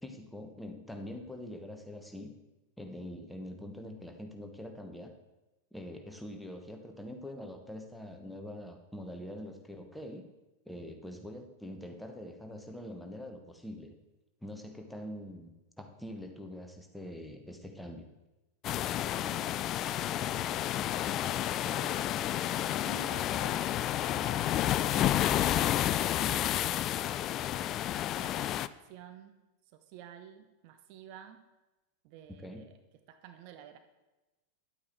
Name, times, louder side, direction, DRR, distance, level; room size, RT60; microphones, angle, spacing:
voice 1, 0.0-2.4 2.8-5.1 5.7-10.2 10.6-13.9 14.4-18.1 32.4-32.6, left 1 dB, ahead, 3 dB, 1.2 m, -44 dB
sound 1, 18.6-28.7, left 12 dB, 35° left, 0.3 m, -30 dB
voice 2, 19.2-19.6 20.2-22.1 22.4-25.4 26.2-26.7 27.9-29.4 29.7-31.4 32.0-32.8 33.1-33.8, right 10 dB, 45° right, 8 dB, 0.7 m, -52 dB
10.5 x 8.6 x 4.5 m, 1.0 s
figure-of-eight pair, 90°, 0 cm